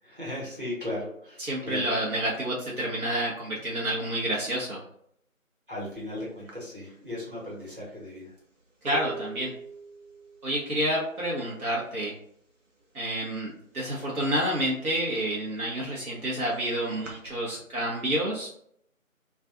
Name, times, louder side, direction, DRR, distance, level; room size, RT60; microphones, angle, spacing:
voice 1, 0.0-1.9 5.7-8.3, left 1 dB, 40° right, -8 dB, 1.1 m, -37 dB
voice 2, 1.4-4.8 8.8-9.5 10.4-12.1 12.9-18.5, right 1 dB, 90° right, -5 dB, 1.0 m, -29 dB
sound 1, 6.0-6.1 6.5-12.2 12.4-12.9 13.2-14.3 14.7-17.3, right 5 dB, 60° right, 0.8 m, -44 dB
2.5 x 2.3 x 2.5 m, 0.68 s
figure-of-eight pair, 175°, 42 cm